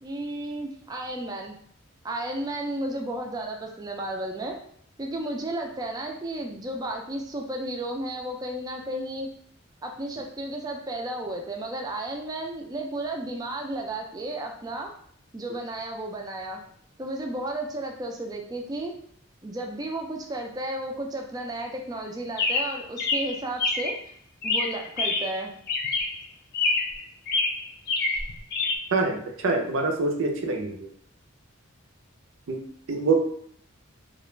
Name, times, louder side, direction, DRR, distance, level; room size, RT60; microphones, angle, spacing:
voice 1, 0.0-1.6 2.0-4.6 5.0-9.3 9.8-14.9 15.3-16.6 17.0-18.9 19.4-24.0 24.4-25.5, right 1 dB, 20° right, 2 dB, 0.3 m, -33 dB
Chirp tweet, 22.4-24.0 24.4-25.4 25.7-26.2 26.5-27.0 27.3-28.8, left 3 dB, 50° left, 0.4 m, -26 dB
voice 2, 28.9-30.7 32.5-32.6 32.9-33.1, right 3 dB, 80° right, 3 dB, 0.5 m, -25 dB
2.4 x 2.1 x 3.1 m, 0.63 s
head